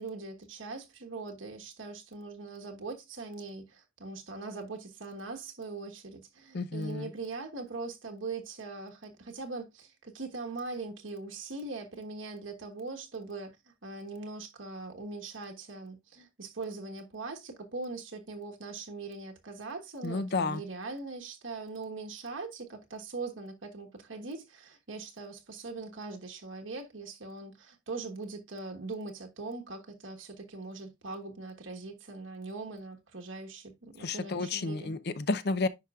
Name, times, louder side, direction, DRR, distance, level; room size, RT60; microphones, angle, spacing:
voice 1, 0.0-13.5 13.8-34.9, right 3 dB, 75° right, 1.3 m, -41 dB
voice 2, 6.5-7.1 20.0-20.6 34.0-35.7, left 3 dB, 55° left, 0.6 m, -31 dB
10.0 x 5.0 x 2.4 m
head